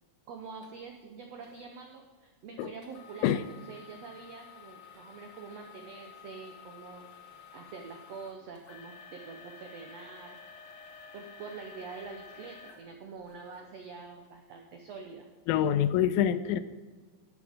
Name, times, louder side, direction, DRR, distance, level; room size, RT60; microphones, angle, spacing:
voice 1, 0.3-7.0 7.5-10.4 11.1-15.3, right 5 dB, 85° right, 3 dB, 1.4 m, -46 dB
sound 1, 0.6-0.7 1.4-1.7 2.8-13.7 14.2-14.3 14.9-15.1, left 6 dB, 60° left, 1.6 m, -51 dB
voice 2, 15.5-16.6, left 10 dB, 80° left, 14 dB, 2.3 m, -25 dB
12.5 x 10.0 x 3.6 m, 1.4 s
omnidirectional pair, 4.2 m